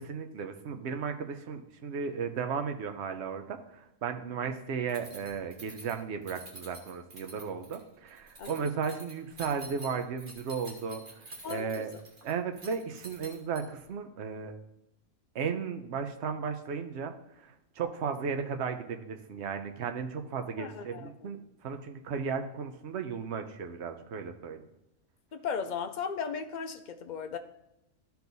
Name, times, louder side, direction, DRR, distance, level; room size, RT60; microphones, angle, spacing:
voice 1, 0.0-3.6 4.0-11.0 11.5-11.9 12.2-14.5 15.3-17.1 17.8-21.4 21.6-24.6, right 6 dB, 60° right, 6 dB, 0.9 m, -35 dB
Keys jangling, 4.9-13.9, right 2 dB, 40° right, 1.4 m, -48 dB
voice 2, 11.4-11.9 20.5-21.4 25.3-27.4, left 6 dB, 50° left, 7 dB, 0.5 m, -37 dB
13.5 x 4.6 x 4.0 m, 0.85 s
omnidirectional pair, 1.5 m